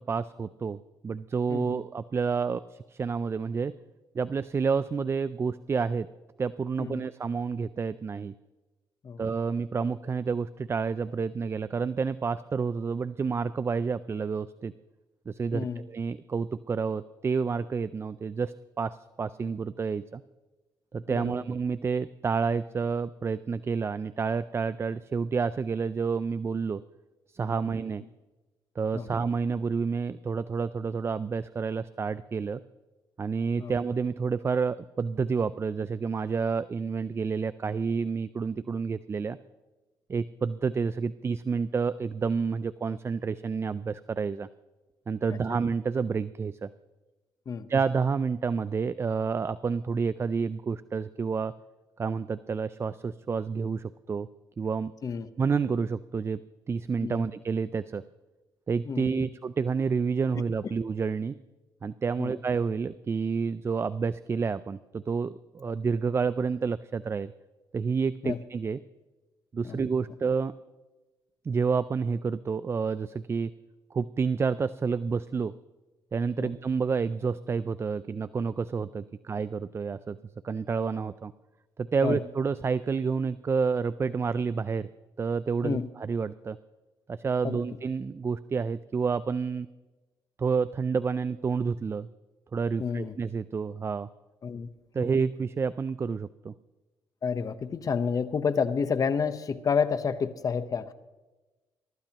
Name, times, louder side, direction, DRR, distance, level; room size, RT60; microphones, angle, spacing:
voice 1, 0.1-0.8 1.0-3.7 4.1-6.1 6.4-8.3 9.2-14.7 15.3-20.2 20.9-26.8 27.3-28.0 28.8-32.6 33.2-39.4 40.1-44.5 45.1-46.7 47.7-51.5 52.0-54.3 54.6-54.9 55.4-56.4 56.7-58.0 58.7-61.3 61.8-67.3 67.7-68.8 69.5-70.5 71.4-73.5 73.9-75.5 76.1-80.2 80.4-81.3 81.8-84.9 85.2-86.6 87.1-89.7 90.4-92.1 92.5-94.1 94.9-96.5, right 5 dB, 30° right, 16 dB, 0.4 m, -29 dB
voice 2, 1.5-1.8 6.8-7.1 9.0-9.2 15.5-15.8 21.1-21.3 27.6-27.8 28.9-29.1 33.6-33.7 45.3-45.4 47.5-47.7 55.0-55.3 57.0-57.3 58.8-59.3 62.2-62.4 68.2-68.4 69.6-69.8 76.4-76.5 82.0-82.2 85.6-85.9 87.4-87.6 92.8-93.2 94.4-94.7 95.0-95.2 97.2-100.9, left 6 dB, 45° left, 12 dB, 0.9 m, -30 dB
23.5 x 13.0 x 2.9 m, 1.2 s
cardioid pair, 85°, 8 cm